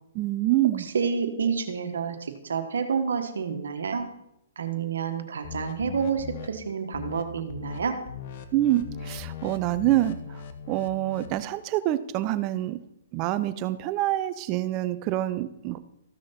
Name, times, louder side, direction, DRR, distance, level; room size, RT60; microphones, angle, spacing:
voice 1, 0.1-0.9 8.5-10.4 10.7-12.8 13.1-15.8, right 15 dB, 35° right, 13 dB, 0.6 m, -26 dB
voice 2, 0.8-4.1 4.6-8.0, right 6 dB, 80° right, 6 dB, 1.4 m, -29 dB
sound 1, 5.4-6.5 6.9-7.2 7.5-7.8 8.1-11.4, left 7 dB, 55° left, 1.1 m, -39 dB
14.0 x 6.4 x 4.3 m, 0.81 s
hypercardioid pair, 135°, 0 cm